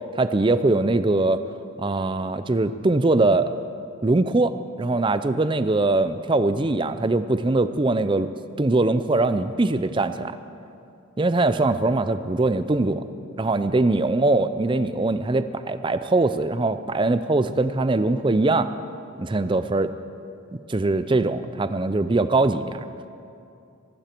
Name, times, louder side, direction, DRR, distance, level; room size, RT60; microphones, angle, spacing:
voice 1, 0.2-1.4 1.8-3.5 4.0-8.3 8.6-10.3 11.2-13.0 13.4-18.7 19.2-19.9 20.7-22.8, right 2 dB, 25° right, 12 dB, 0.4 m, -22 dB
24.0 x 12.0 x 4.5 m, 2.6 s
head